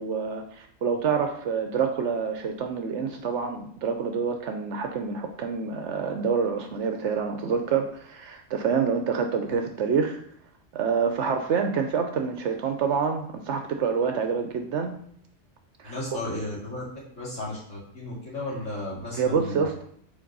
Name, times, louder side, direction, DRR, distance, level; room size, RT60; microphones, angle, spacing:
voice 1, 0.0-10.2 10.7-15.0 15.8-16.2 19.2-19.8, right 6 dB, 70° right, 5 dB, 0.9 m, -27 dB
voice 2, 15.8-16.8 17.2-19.7, left 1 dB, 80° left, -6 dB, 2.8 m, -34 dB
5.1 x 4.5 x 5.3 m, 0.67 s
omnidirectional pair, 1.3 m